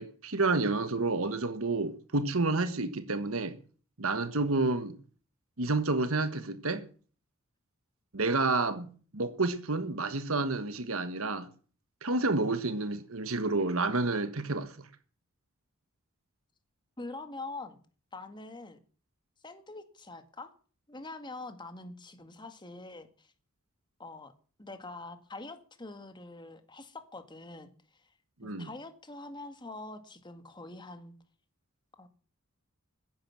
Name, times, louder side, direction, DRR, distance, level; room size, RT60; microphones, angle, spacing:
voice 1, 0.0-3.6 4.0-4.9 5.6-6.8 8.1-11.5 12.0-14.9 28.4-28.7, right 3 dB, 75° right, 1.4 m, -30 dB
voice 2, 17.0-17.8 18.1-18.8 19.4-20.5 20.9-23.3 24.0-24.3 24.6-28.1 28.4-31.2 32.0-32.1, left 2 dB, 20° left, 1.9 m, -44 dB
15.5 x 10.5 x 7.4 m
head